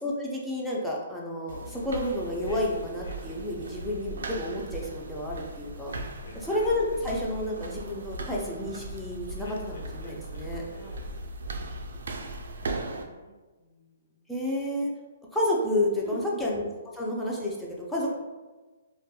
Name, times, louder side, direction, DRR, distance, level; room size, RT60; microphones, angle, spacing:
voice 1, 0.0-5.9 6.3-10.6 14.3-14.9 15.3-16.6 16.9-18.1, left 1 dB, 5° left, -4 dB, 0.3 m, -30 dB
sound 1, 1.5-13.0, right 2 dB, 80° right, 0.3 m, -38 dB
sound 2, 2.4-4.2 5.9-7.7 9.4-10.5 10.7-11.3, left 2 dB, 80° left, 0.5 m, -50 dB
voice 2, 6.2-6.6 10.6-10.9 11.3-11.4 12.6-14.3 16.0-16.4, right 1 dB, 15° right, -7 dB, 0.7 m, -47 dB
2.7 x 2.2 x 2.2 m, 1.3 s
hypercardioid pair, 160°, 0 cm